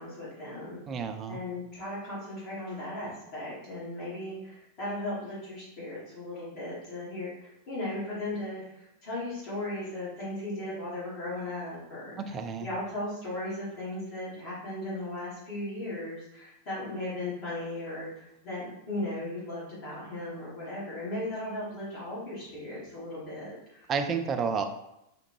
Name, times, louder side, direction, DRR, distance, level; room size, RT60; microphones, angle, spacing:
voice 1, 0.0-0.8 1.3-23.9, left 1 dB, 45° left, -9 dB, 1.5 m, -37 dB
voice 2, 0.9-1.4 12.2-12.7 23.9-24.6, right 5 dB, 25° right, 7 dB, 0.3 m, -30 dB
3.5 x 2.1 x 3.0 m, 0.84 s
figure-of-eight pair, 90°, 0 cm